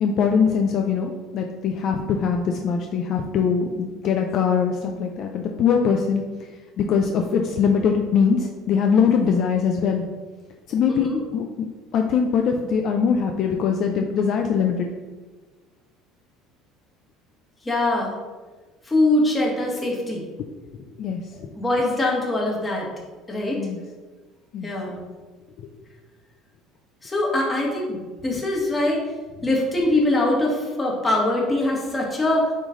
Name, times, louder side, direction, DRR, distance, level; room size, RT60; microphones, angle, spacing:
voice 1, 0.0-6.2 6.8-10.0 10.7-11.4 11.9-14.9 21.0-21.2 23.6-23.8 24.5-24.7, left 6 dB, 50° left, 3 dB, 0.5 m, -22 dB
voice 2, 10.9-11.2 17.6-18.1 18.8-20.2 21.6-22.9 23.3-23.6 24.6-25.0 27.0-29.1 29.4-32.5, left 1 dB, 15° left, -2 dB, 1.6 m, -23 dB
9.0 x 3.3 x 3.8 m, 1.3 s
cardioid pair, 140°, 0 cm